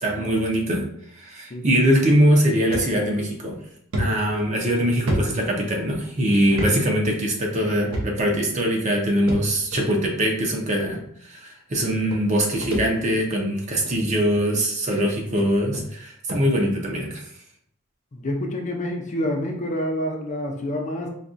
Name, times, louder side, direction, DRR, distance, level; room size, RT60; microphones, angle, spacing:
voice 1, 0.0-0.8 1.2-3.6 4.0-17.2, equal, 35° right, 0 dB, 0.6 m, -22 dB
sound 1, 2.7-2.9 3.3-3.4 3.9-6.0 6.5-6.7 7.0-7.1 7.9-8.4 9.3-9.8 10.7-10.8 11.8-11.9 12.1-13.3 13.7-14.0 14.8-14.9 15.4-15.5 15.7-15.9 16.3-16.5, equal, 75° right, 0.7 m, -29 dB
voice 2, 18.1-21.1, left 1 dB, 35° left, 2 dB, 0.5 m, -28 dB
4.0 x 2.2 x 2.5 m, 0.68 s
head